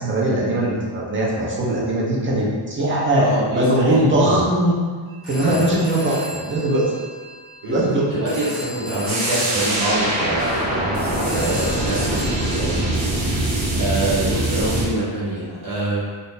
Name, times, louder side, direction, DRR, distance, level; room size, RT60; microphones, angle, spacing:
voice 1, 0.0-4.7 5.3-6.9 7.7-8.0 10.4-10.6 12.7-12.8, right 1 dB, 25° right, -5 dB, 0.7 m, -20 dB
voice 2, 3.2-4.3 5.4-5.8 7.6-7.8 8.1-13.0 13.3-16.0, right 2 dB, 45° right, -8 dB, 1.1 m, -26 dB
Telephone, 5.1-12.9, equal, ahead, 1.0 m, -36 dB
sound 1, 9.1-14.8, right 1 dB, 90° right, 0.9 m, -23 dB
2.6 x 2.5 x 3.7 m, 1.5 s
wide cardioid pair, 165°, 47 cm